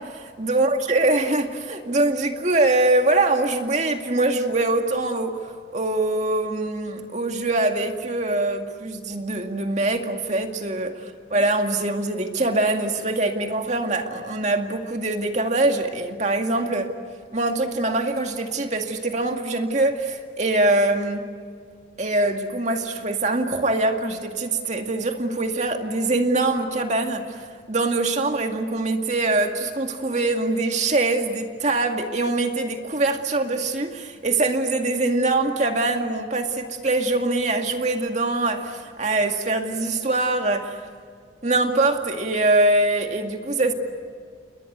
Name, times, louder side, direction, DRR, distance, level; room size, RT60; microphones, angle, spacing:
voice 1, 0.0-10.9 11.3-16.9 17.3-21.2 22.0-40.8 41.4-43.7, right 2 dB, 40° right, 4 dB, 2.2 m, -23 dB
29.5 x 21.5 x 8.2 m, 2.1 s
head